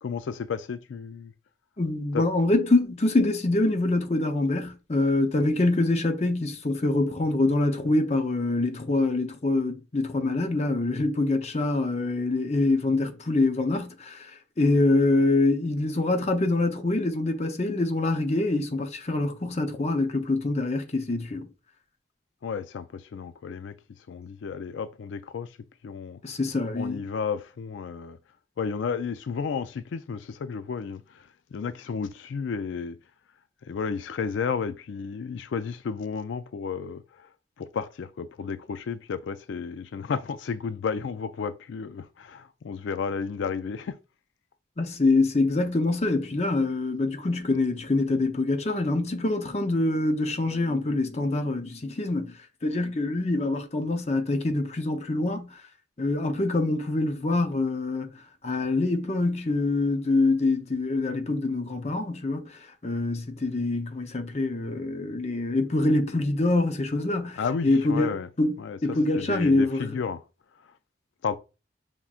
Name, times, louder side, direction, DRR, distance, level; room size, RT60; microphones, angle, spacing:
voice 1, 0.0-1.3 2.1-2.2 22.4-23.8 24.1-25.6 25.8-26.4 26.8-28.2 28.6-33.0 33.6-37.3 37.6-44.0 67.4-68.3 68.6-68.8 69.2-70.2 70.6-70.7 71.2-71.4, left 6 dB, 90° left, 0.4 m, -32 dB
voice 2, 1.8-21.5 26.2-27.0 44.8-55.6 56.0-70.0, left 2 dB, 35° left, 0.6 m, -25 dB
5.6 x 3.6 x 2.4 m
head